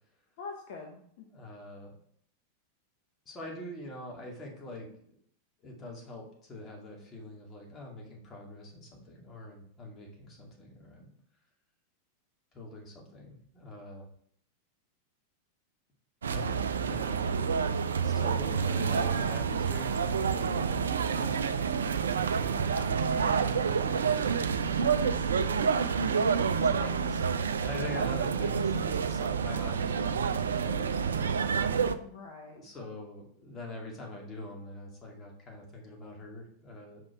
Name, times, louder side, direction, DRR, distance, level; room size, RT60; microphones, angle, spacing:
voice 1, 0.4-1.3 25.5-26.0 32.0-32.6, left 4 dB, 50° left, 1 dB, 1.0 m, -45 dB
voice 2, 1.3-1.9 3.3-5.2 5.6-11.1 12.5-14.1 16.3-17.6 18.0-25.0 26.6-27.3 27.6-31.3 32.5-37.0, left 2 dB, 25° left, -1 dB, 2.3 m, -44 dB
sound 1, 16.2-31.9, right 6 dB, 70° right, 0.4 m, -28 dB
5.9 x 5.3 x 4.7 m, 0.64 s
figure-of-eight pair, 90°, 0 cm